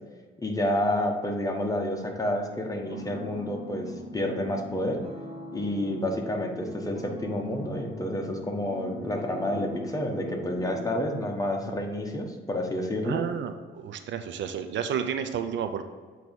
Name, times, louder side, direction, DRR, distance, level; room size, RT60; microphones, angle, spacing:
voice 1, 0.4-5.0 5.5-13.2, left 1 dB, 15° left, 2 dB, 1.2 m, -29 dB
sound 1, 2.8-11.3, left 1 dB, 30° right, 1.3 m, -41 dB
voice 2, 13.0-15.8, right 8 dB, 70° right, 8 dB, 0.6 m, -31 dB
7.9 x 3.0 x 5.2 m, 1.5 s
cardioid pair, 90°, 20 cm